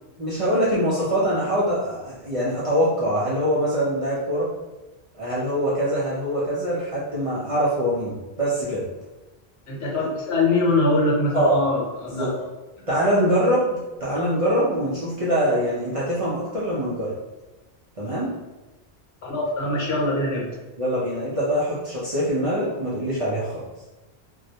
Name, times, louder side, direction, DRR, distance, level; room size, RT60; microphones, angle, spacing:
voice 1, 0.2-4.5 5.1-8.8 11.3-11.6 12.1-12.4 12.9-17.1 18.0-18.3 20.8-23.6, equal, 45° right, -8 dB, 0.4 m, -23 dB
voice 2, 9.7-12.3 19.2-20.5, left 2 dB, 75° left, -4 dB, 1.0 m, -23 dB
2.3 x 2.0 x 2.7 m, 1.1 s
omnidirectional pair, 1.1 m